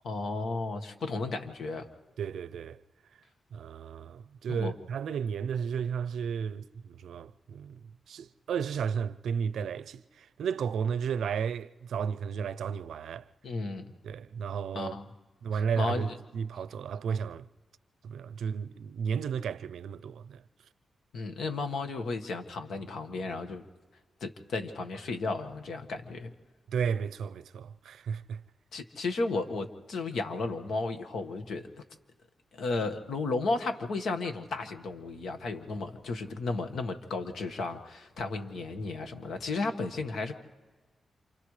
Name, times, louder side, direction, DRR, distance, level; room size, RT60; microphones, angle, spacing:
voice 1, 0.0-1.9 4.5-4.7 13.4-13.8 14.7-15.0 15.5-16.1 21.1-23.6 24.2-26.3 28.7-31.7 32.5-40.4, left 3 dB, 80° left, 1.6 m, -34 dB
voice 2, 2.2-2.8 3.5-7.8 8.1-13.2 14.0-15.0 15.4-17.5 18.0-20.4 26.7-28.4, right 7 dB, 90° right, 0.5 m, -33 dB
29.0 x 27.5 x 3.3 m
cardioid pair, 100°, 0 cm